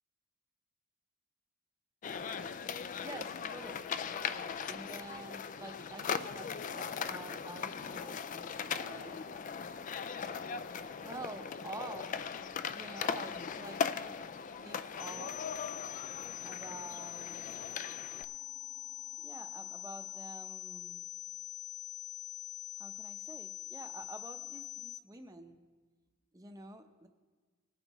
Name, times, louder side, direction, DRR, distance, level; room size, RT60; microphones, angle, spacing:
sound 1, 2.0-18.2, left 6 dB, 35° left, 0.3 m, -39 dB
voice 1, 3.0-9.2 11.0-12.2 12.7-15.4 16.4-17.6 19.2-21.0 22.8-25.6 26.3-27.1, right 2 dB, 15° right, 6 dB, 0.7 m, -49 dB
sound 2, 5.6-20.4, left 1 dB, 80° left, 2.3 m, -59 dB
sound 3, 15.0-25.0, left 13 dB, 55° left, 0.7 m, -44 dB
20.0 x 9.0 x 3.0 m, 1.4 s
head